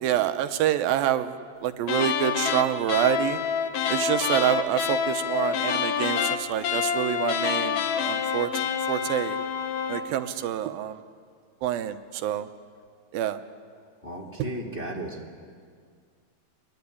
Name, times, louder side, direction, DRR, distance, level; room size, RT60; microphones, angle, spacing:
voice 1, 0.0-1.3 1.6-3.4 3.9-8.5 8.9-9.4 9.9-11.0 11.6-12.5 13.1-13.4 14.4-14.5, right 11 dB, 80° right, 9 dB, 2.6 m, -27 dB
sound 1, 1.8-10.1, left 7 dB, 60° left, 2.1 m, -27 dB
voice 2, 14.0-15.4, right 1 dB, 20° left, -1 dB, 2.0 m, -35 dB
26.5 x 21.5 x 9.8 m, 2.1 s
omnidirectional pair, 4.2 m